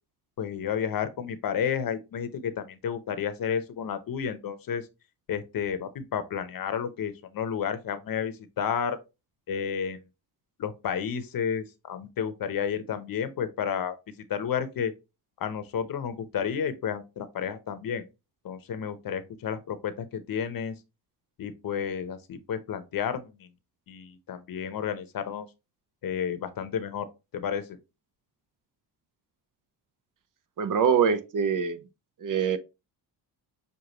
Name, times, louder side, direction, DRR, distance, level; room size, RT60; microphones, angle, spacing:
voice 1, 0.4-4.8 5.3-9.0 9.5-10.0 10.6-14.0 14.3-14.9 15.4-18.0 18.4-20.7 21.4-23.5 23.9-25.5 26.0-27.1 27.3-27.8, left 8 dB, 50° left, 0.8 m, -31 dB
voice 2, 30.6-31.8 32.2-32.6, right 7 dB, 50° right, 0.7 m, -24 dB
6.5 x 2.5 x 2.9 m
cardioid pair, 85°, 43 cm